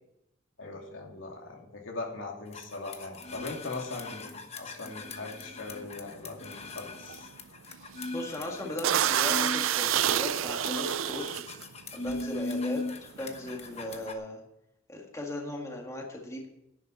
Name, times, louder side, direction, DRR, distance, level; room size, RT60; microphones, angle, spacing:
voice 1, 0.6-7.3, left 3 dB, 80° left, 0 dB, 2.8 m, -40 dB
sound 1, 2.5-14.1, left 3 dB, 35° left, 1.1 m, -39 dB
sound 2, 5.8-6.1 6.5-6.8 7.0-7.2 7.7-8.1 8.4-8.5 8.8-11.6 12.4-12.6 12.9-14.0, right 10 dB, 90° right, 0.5 m, -28 dB
voice 2, 8.1-11.4 11.9-12.8 13.2-14.4 14.9-16.5, left 1 dB, 15° left, 0 dB, 1.8 m, -37 dB
11.0 x 7.1 x 8.7 m, 0.83 s
head